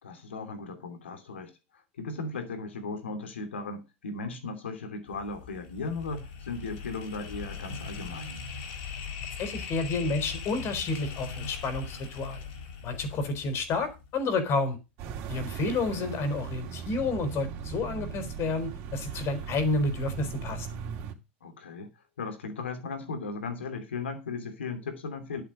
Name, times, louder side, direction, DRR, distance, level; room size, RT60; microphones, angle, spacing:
voice 1, 0.0-8.4 16.0-16.2 21.4-21.9 22.2-25.4, left 3 dB, 80° left, 2.9 m, -37 dB
sound 1, 5.1-14.2, left 6 dB, 60° left, 4.7 m, -40 dB
voice 2, 9.4-12.4 12.8-14.8 15.3-20.7, left 3 dB, 45° left, 4.0 m, -30 dB
sound 2, 15.0-21.1, right 7 dB, 50° right, 2.9 m, -38 dB
11.5 x 9.1 x 5.1 m
hypercardioid pair, 85°, 6 cm